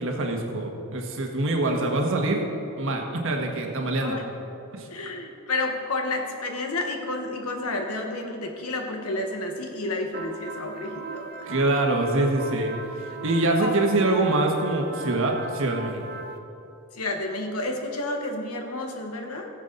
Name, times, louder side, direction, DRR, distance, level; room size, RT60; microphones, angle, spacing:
voice 1, 0.0-2.4 2.8-4.2 4.7-4.9 11.5-12.7 13.2-16.2, right 2 dB, 65° right, 2 dB, 1.4 m, -24 dB
voice 2, 4.9-11.5 13.6-13.8 16.9-19.5, left 2 dB, 85° left, 3 dB, 1.4 m, -30 dB
sound 1, 10.1-16.4, right 3 dB, 45° right, 0.8 m, -39 dB
17.5 x 7.4 x 4.0 m, 2.7 s
head